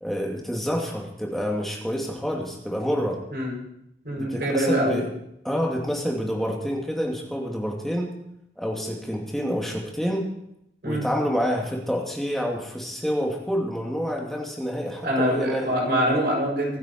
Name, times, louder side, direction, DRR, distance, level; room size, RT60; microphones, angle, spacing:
voice 1, 0.0-3.2 4.2-5.1 5.4-8.1 8.6-10.3 10.8-15.7, equal, ahead, -1 dB, 2.5 m, -28 dB
voice 2, 4.0-5.0 10.8-11.0 15.0-16.8, equal, 65° right, -3 dB, 7.2 m, -24 dB
24.5 x 9.3 x 4.5 m, 0.79 s
head